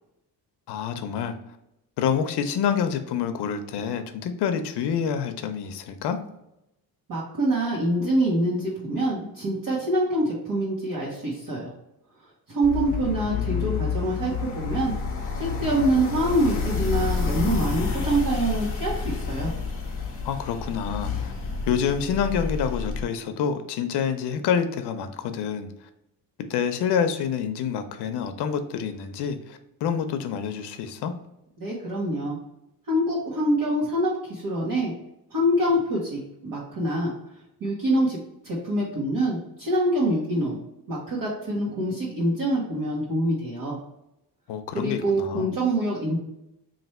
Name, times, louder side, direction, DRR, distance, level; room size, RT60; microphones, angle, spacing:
voice 1, 0.7-1.4 2.0-6.2 13.0-13.9 20.2-21.3 21.7-25.7 26.5-31.1 44.5-45.5, left 7 dB, 75° left, 8 dB, 0.6 m, -27 dB
voice 2, 7.1-11.7 12.5-14.9 15.3-19.5 31.6-32.4 32.9-34.9 35.3-37.1 37.6-38.2 38.4-40.6 40.9-43.8 44.7-46.2, right 1 dB, 55° right, -6 dB, 1.2 m, -25 dB
sound 1, 12.6-23.0, left 5 dB, 35° left, 0.8 m, -29 dB
3.2 x 2.6 x 4.2 m, 0.86 s
cardioid pair, 135°, 41 cm